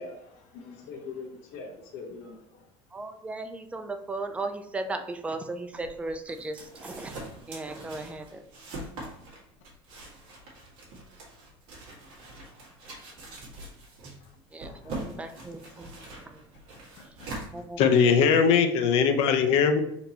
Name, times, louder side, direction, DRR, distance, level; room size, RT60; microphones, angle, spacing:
voice 1, 0.0-2.7, left 4 dB, 75° left, 1.4 m, -42 dB
voice 2, 2.9-7.2 7.5-8.4 14.5-15.9 16.2-16.5 17.5-18.1, right 2 dB, 10° right, 0.4 m, -36 dB
sound 1, 5.7-18.2, right 2 dB, 50° right, 1.7 m, -43 dB
voice 3, 17.8-19.8, left 6 dB, 60° left, 0.6 m, -20 dB
4.3 x 2.8 x 4.2 m
cardioid pair, 145°, 12 cm